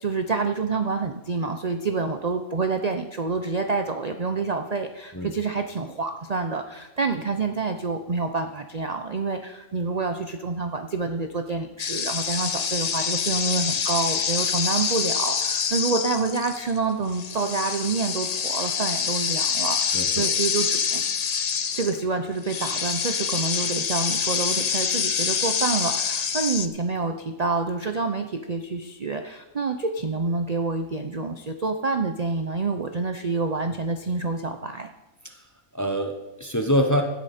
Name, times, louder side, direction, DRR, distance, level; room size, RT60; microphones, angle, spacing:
voice 1, 0.0-21.0 21.7-34.9, right 4 dB, 40° right, 6 dB, 0.6 m, -27 dB
sound 1, 11.8-16.8 17.1-22.0 22.4-26.7, left 7 dB, 60° left, 0.4 m, -26 dB
voice 2, 19.9-20.2 35.7-37.0, equal, 15° left, 4 dB, 0.8 m, -24 dB
16.5 x 8.4 x 4.3 m, 1.0 s
omnidirectional pair, 1.5 m